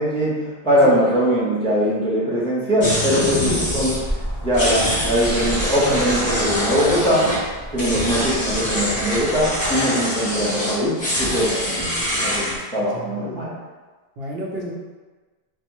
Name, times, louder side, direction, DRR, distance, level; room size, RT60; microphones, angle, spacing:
voice 1, 0.0-4.0 4.4-7.3 7.7-13.6, equal, 5° left, -8 dB, 0.6 m, -21 dB
sound 1, 2.8-4.0 4.5-7.4 7.7-12.5, equal, 30° left, 1.1 m, -24 dB
sound 2, 3.3-9.8, equal, 40° right, 0.4 m, -32 dB
voice 2, 12.9-13.5 14.2-14.7, right 1 dB, 75° right, -3 dB, 0.9 m, -32 dB
3.3 x 2.3 x 3.0 m, 1.3 s
omnidirectional pair, 1.0 m